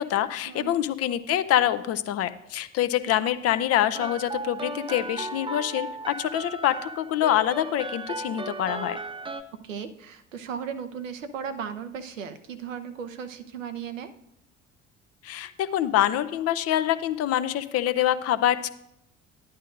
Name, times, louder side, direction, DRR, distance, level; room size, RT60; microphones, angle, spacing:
voice 1, 0.0-9.0 15.2-18.7, left 12 dB, 40° left, 12 dB, 0.5 m, -25 dB
sound 1, 3.9-9.4, right 3 dB, 15° right, 0.5 m, -36 dB
voice 2, 9.6-14.1, right 7 dB, 80° right, 9 dB, 0.7 m, -36 dB
10.5 x 10.0 x 2.6 m, 0.79 s
figure-of-eight pair, 55°, 38 cm